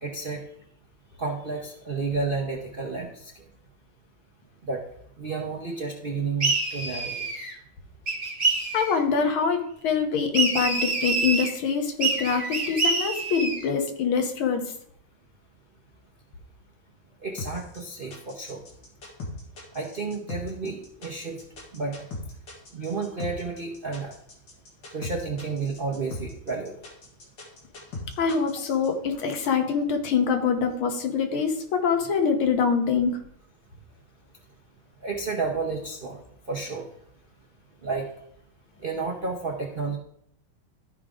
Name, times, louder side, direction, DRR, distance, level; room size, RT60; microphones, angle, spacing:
voice 1, 0.0-0.4 1.2-3.4 4.6-4.8 5.2-7.3 17.2-18.6 19.7-21.4 21.7-21.9 22.7-24.1 24.9-26.8 35.0-36.2 36.5-36.9 37.8-38.1 38.8-40.0, right 4 dB, 50° right, -1 dB, 0.6 m, -31 dB
sound 1, 6.4-7.5 8.1-9.0 10.3-11.5 12.0-13.7, right 3 dB, 20° right, 2.3 m, -26 dB
voice 2, 8.7-14.6 28.2-33.2, left 6 dB, 85° left, 5 dB, 1.9 m, -24 dB
sound 2, 17.4-28.9, left 2 dB, 60° left, 2.4 m, -39 dB
13.0 x 4.9 x 3.7 m, 0.71 s
omnidirectional pair, 2.2 m